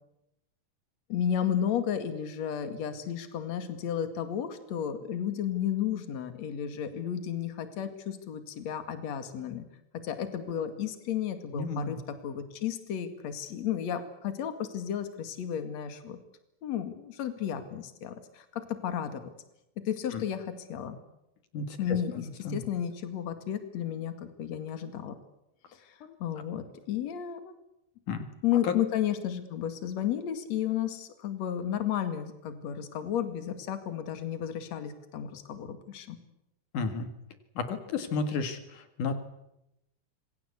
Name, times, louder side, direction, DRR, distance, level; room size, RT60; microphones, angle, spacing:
voice 1, 1.1-9.6 10.0-12.0 12.2-16.2 16.6-19.2 19.8-21.0 21.8-25.2 25.7-27.5 28.4-36.2, left 9 dB, 60° left, 9 dB, 3.2 m, -33 dB
voice 2, 11.5-12.0 20.1-20.2 21.5-22.0 22.5-22.6 26.0-26.2 28.1-28.3 28.6-28.7 36.7-37.1 37.6-39.1, left 4 dB, 75° left, 8 dB, 3.3 m, -32 dB
26.5 x 23.0 x 8.2 m, 0.87 s
omnidirectional pair, 3.7 m